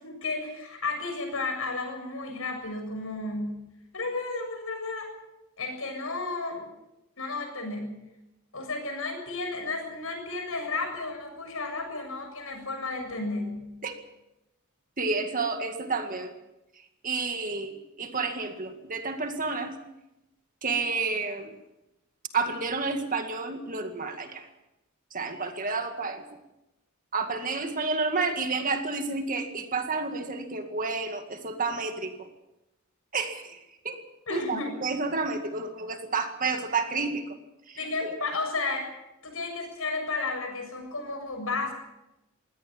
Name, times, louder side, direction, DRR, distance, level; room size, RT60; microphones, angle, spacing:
voice 1, 0.0-3.6 3.9-5.1 5.6-6.6 7.2-7.9 8.5-13.7 34.3-34.7 37.8-38.9 39.2-41.7, left 3 dB, 75° left, 5 dB, 7.2 m, -33 dB
voice 2, 15.0-16.3 17.0-19.7 20.6-21.5 22.3-24.5 25.1-26.2 27.1-32.1 33.1-33.6 33.8-34.0 34.3-37.4 37.7-38.1, right 4 dB, 40° right, 6 dB, 2.1 m, -30 dB
22.5 x 17.0 x 7.4 m, 0.92 s
head